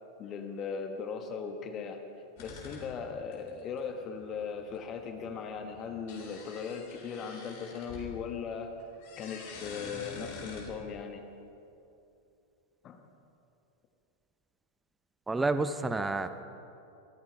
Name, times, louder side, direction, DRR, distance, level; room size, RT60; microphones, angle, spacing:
voice 1, 0.2-2.0 2.4-8.7 9.2-11.3 12.8-13.0, left 6 dB, 30° left, 5 dB, 1.3 m, -38 dB
sound 1, 2.4-8.4 8.6-10.9, left 4 dB, 50° left, 4.4 m, -48 dB
voice 2, 15.3-16.4, right 3 dB, 10° right, 11 dB, 0.8 m, -30 dB
25.0 x 15.0 x 3.4 m, 2.7 s
figure-of-eight pair, 90°, 0 cm